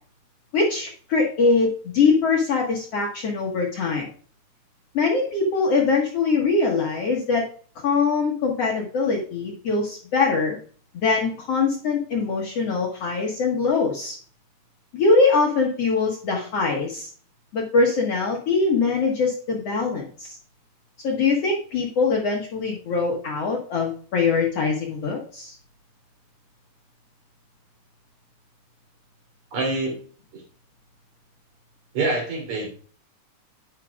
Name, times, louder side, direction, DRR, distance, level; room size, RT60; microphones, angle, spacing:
voice 1, 0.5-4.1 4.9-7.5 7.8-10.6 10.9-14.2 14.9-17.1 17.5-20.4 21.0-25.6, left 4 dB, 55° left, -2 dB, 2.4 m, -22 dB
voice 2, 29.5-30.0 30.3-30.4 31.9-32.7, right 2 dB, 65° right, 0 dB, 4.7 m, -25 dB
11.5 x 9.2 x 2.4 m, 0.43 s
omnidirectional pair, 3.6 m